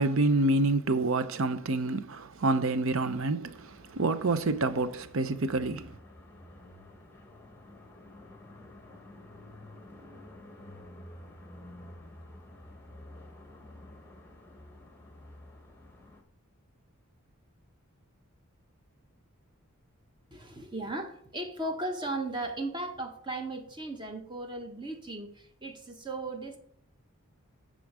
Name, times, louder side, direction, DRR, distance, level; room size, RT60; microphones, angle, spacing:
voice 1, 0.0-6.0, right 2 dB, 65° right, 0.6 m, -27 dB
sound 1, 3.5-16.2, left 1 dB, 10° left, 1.1 m, -50 dB
voice 2, 20.3-26.6, right 2 dB, 20° right, 1.0 m, -36 dB
9.7 x 3.7 x 6.1 m
head